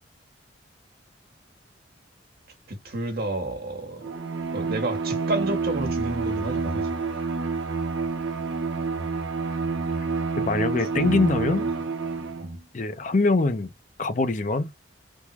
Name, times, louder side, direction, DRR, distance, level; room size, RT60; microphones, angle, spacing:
voice 1, 2.7-4.1 4.5-7.0 10.5-11.7 12.4-12.6, right 2 dB, 55° right, 1.2 m, -31 dB
Bowed string instrument, 4.0-12.6, right 4 dB, 85° right, 0.7 m, -28 dB
voice 2, 10.4-11.7 12.7-13.7 14.0-14.7, left 3 dB, 45° left, 0.6 m, -23 dB
3.5 x 2.3 x 3.0 m
head